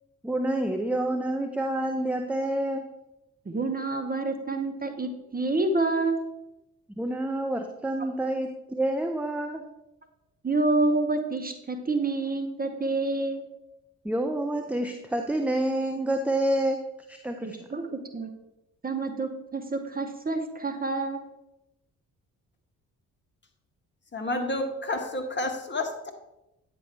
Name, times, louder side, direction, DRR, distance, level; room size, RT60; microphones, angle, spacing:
voice 1, 0.2-2.8 7.0-9.6 14.0-16.8 17.1-17.6, right 1 dB, 5° right, 5 dB, 0.6 m, -28 dB
voice 2, 3.5-6.3 10.4-13.4 17.4-18.3 18.8-21.2, right 3 dB, 20° right, 6 dB, 0.9 m, -28 dB
voice 3, 24.1-26.1, left 2 dB, 25° left, 3 dB, 1.3 m, -30 dB
9.1 x 5.3 x 3.3 m, 0.92 s
hypercardioid pair, 45°, 42 cm